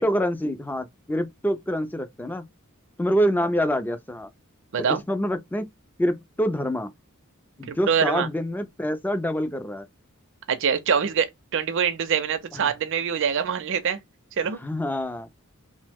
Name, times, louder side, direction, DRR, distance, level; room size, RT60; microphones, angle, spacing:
voice 1, 0.0-2.4 3.0-4.3 4.8-5.7 6.0-6.9 7.6-9.9 12.5-12.7 14.6-15.3, equal, 10° left, 0.3 m, -26 dB
voice 2, 7.7-8.3 10.5-11.3 11.5-14.0 14.4-14.6, right 7 dB, 60° right, 0.5 m, -24 dB
3.0 x 2.0 x 3.3 m
head